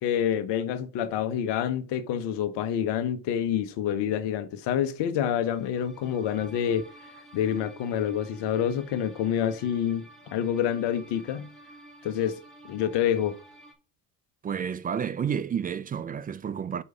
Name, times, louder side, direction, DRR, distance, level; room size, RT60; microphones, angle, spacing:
voice 1, 0.0-6.9 7.3-11.5 12.0-13.4, left 9 dB, 60° left, 1.1 m, -27 dB
sound 1, 5.4-13.7, right 1 dB, ahead, 1.8 m, -51 dB
voice 2, 14.4-16.8, right 7 dB, 20° right, 0.3 m, -30 dB
5.5 x 4.7 x 5.6 m
hypercardioid pair, 75°, 47 cm